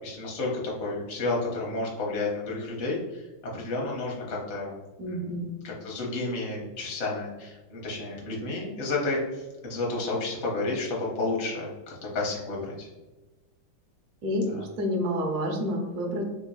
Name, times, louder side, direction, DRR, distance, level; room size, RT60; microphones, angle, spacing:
voice 1, 0.0-4.7 5.1-12.9, left 2 dB, 50° left, -3 dB, 0.9 m, -31 dB
voice 2, 5.0-5.6 14.2-14.5 14.8-16.2, equal, 70° right, 2 dB, 0.9 m, -29 dB
3.8 x 2.8 x 2.2 m, 1.1 s
omnidirectional pair, 2.3 m